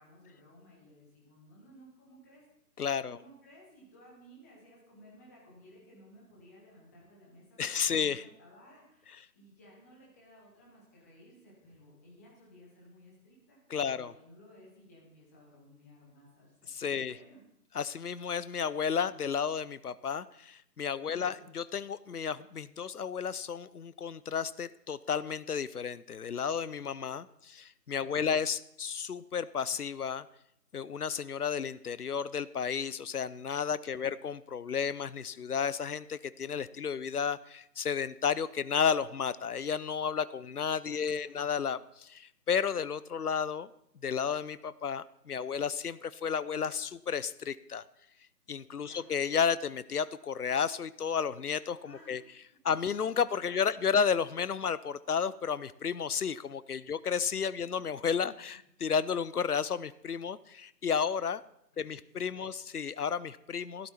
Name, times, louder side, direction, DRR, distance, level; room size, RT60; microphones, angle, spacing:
voice 1, 0.0-2.4 3.0-16.5 16.8-17.4 21.1-21.4 28.0-28.3 34.0-34.1 40.9-41.5 48.8-49.1 51.8-52.1 61.7-62.5, equal, 10° left, -4 dB, 1.5 m, -57 dB
voice 2, 2.8-3.2 7.6-8.2 13.7-14.1 16.7-17.2 17.7-30.3 30.7-43.7 44.0-47.8 48.5-52.2 52.6-61.4 61.8-63.9, left 7 dB, 65° left, 18 dB, 0.6 m, -32 dB
13.0 x 12.0 x 4.3 m, 0.78 s
figure-of-eight pair, 155°, 50 cm